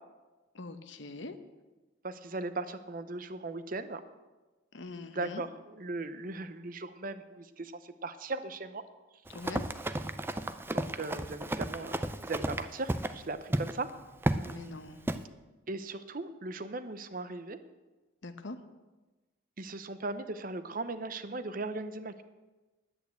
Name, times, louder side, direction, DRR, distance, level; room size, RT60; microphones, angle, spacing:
voice 1, 0.5-1.4 4.7-5.5 9.3-9.6 14.5-15.0 18.2-18.6, left 2 dB, 60° left, 9 dB, 0.9 m, -43 dB
voice 2, 2.0-4.0 5.1-8.8 10.7-12.0 12.2-13.9 14.4-14.7 15.7-17.6 19.6-22.2, right 2 dB, 40° right, 11 dB, 0.7 m, -38 dB
Run, 9.3-13.2 13.5-13.7 14.2-14.5 15.1-15.2, right 1 dB, 10° right, 0.4 m, -33 dB
10.5 x 8.8 x 8.1 m, 1.2 s
head